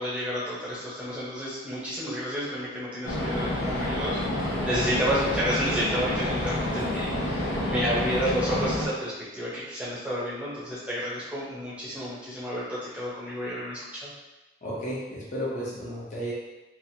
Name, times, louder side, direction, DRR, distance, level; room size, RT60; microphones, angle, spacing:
voice 1, 0.0-14.1, equal, 5° right, -9 dB, 0.7 m, -31 dB
sound 1, 3.0-8.9, left 1 dB, 75° left, 0.6 m, -29 dB
voice 2, 14.6-16.3, equal, 40° left, -7 dB, 0.7 m, -33 dB
2.8 x 2.5 x 2.7 m, 1.1 s
head